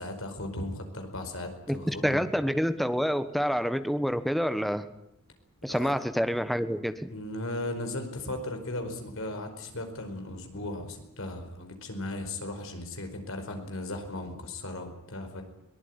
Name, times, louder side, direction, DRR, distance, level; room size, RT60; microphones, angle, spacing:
voice 1, 0.0-2.2 5.7-5.9 7.1-15.4, left 1 dB, 65° left, 6 dB, 5.0 m, -37 dB
voice 2, 1.7-4.9 5.6-7.1, equal, ahead, 10 dB, 1.3 m, -28 dB
22.5 x 19.5 x 9.8 m, 0.82 s
head